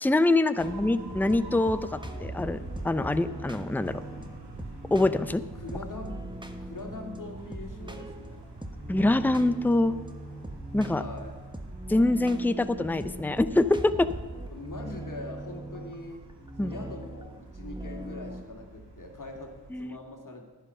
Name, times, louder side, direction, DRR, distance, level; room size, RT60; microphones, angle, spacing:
voice 1, 0.0-4.0 4.9-5.4 8.9-10.0 10.7-11.0 11.9-14.1 16.6-16.7 19.7-20.0, left 2 dB, 5° left, 13 dB, 0.6 m, -25 dB
sound 1, 0.6-18.4, right 1 dB, 10° right, 1.4 m, -41 dB
sound 2, 0.6-19.8, right 2 dB, 90° right, 2.2 m, -47 dB
voice 2, 5.5-6.2 6.6-8.4 10.9-11.4 14.5-16.2 16.6-20.5, left 3 dB, 50° left, 2 dB, 2.4 m, -42 dB
11.0 x 10.5 x 5.5 m, 1.4 s
cardioid pair, 45°, 40 cm